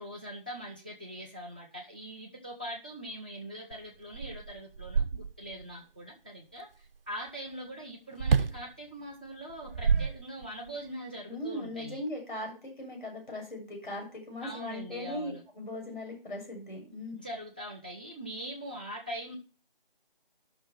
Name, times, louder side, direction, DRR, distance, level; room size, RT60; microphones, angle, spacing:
voice 1, 0.0-12.0 14.4-15.4 17.1-19.4, right 1 dB, 10° left, -2 dB, 0.8 m, -42 dB
sound 1, 3.7-3.8 4.1-5.6 8.2-8.7 9.5-10.7, right 6 dB, 75° right, 0.6 m, -28 dB
voice 2, 11.3-17.1, left 1 dB, 55° left, 1 dB, 7.2 m, -39 dB
9.1 x 6.3 x 7.2 m, 0.35 s
figure-of-eight pair, 170°, 29 cm